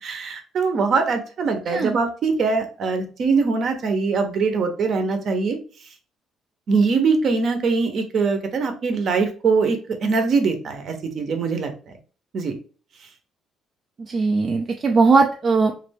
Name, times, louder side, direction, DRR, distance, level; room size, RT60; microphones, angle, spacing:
voice 1, 0.0-5.6 6.7-11.7 12.3-12.5, right 4 dB, 50° right, 6 dB, 0.7 m, -22 dB
voice 2, 1.7-2.0 14.0-15.7, right 4 dB, 30° right, 3 dB, 0.3 m, -19 dB
3.1 x 2.5 x 3.3 m, 0.38 s
cardioid pair, 145°, 0 cm